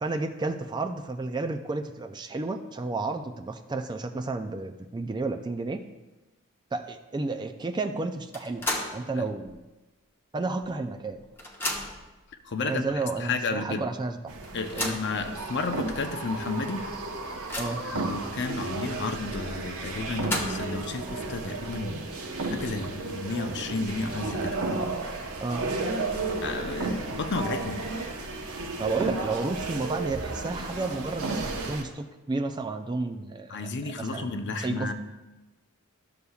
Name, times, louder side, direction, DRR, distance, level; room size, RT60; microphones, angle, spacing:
voice 1, 0.0-5.8 6.7-9.6 10.3-11.2 12.6-14.4 14.7-15.0 17.6-17.8 25.4-25.7 28.8-33.7 34.0-34.9, right 3 dB, 20° right, 7 dB, 0.3 m, -32 dB
sound 1, 8.3-9.1 9.5-9.6 10.6-10.7 11.0-12.1 12.9-13.0 13.4-13.5 14.4-15.1 15.8-15.9 16.3-16.4 16.9-17.9 19.9-20.8, left 1 dB, 10° left, 0.9 m, -33 dB
voice 2, 12.4-12.8 13.2-13.8 14.5-16.9 17.8-22.1 22.5-24.6 26.4-27.8 33.5-34.9, left 3 dB, 50° left, 7 dB, 0.6 m, -32 dB
sound 2, 14.3-31.8, right 3 dB, 70° right, 1.0 m, -33 dB
13.0 x 6.7 x 2.3 m, 1.1 s
head